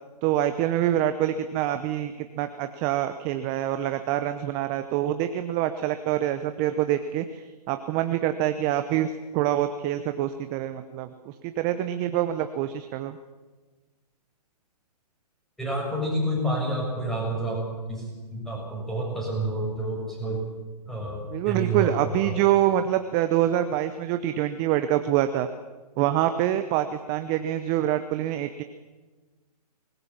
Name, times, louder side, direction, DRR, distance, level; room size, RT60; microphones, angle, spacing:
voice 1, 0.2-13.2 21.3-25.5 26.0-28.6, right 12 dB, 20° right, 10 dB, 0.8 m, -26 dB
voice 2, 15.6-20.4 20.8-22.4, right 1 dB, ahead, -2 dB, 6.6 m, -29 dB
23.5 x 20.0 x 7.3 m, 1.3 s
hypercardioid pair, 140°, 21 cm